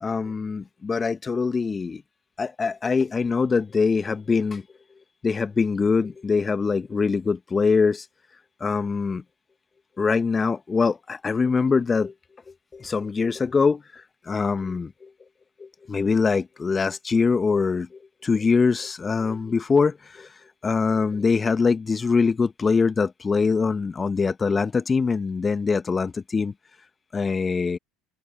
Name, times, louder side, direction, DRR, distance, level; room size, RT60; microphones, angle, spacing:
voice 1, 0.0-2.0 2.4-4.7 5.2-8.1 8.6-9.2 10.0-12.1 12.5-15.1 15.6-26.5 27.1-27.8, left 5 dB, 25° left, 1.7 m, -23 dB
figure-of-eight pair, 65°, 0 cm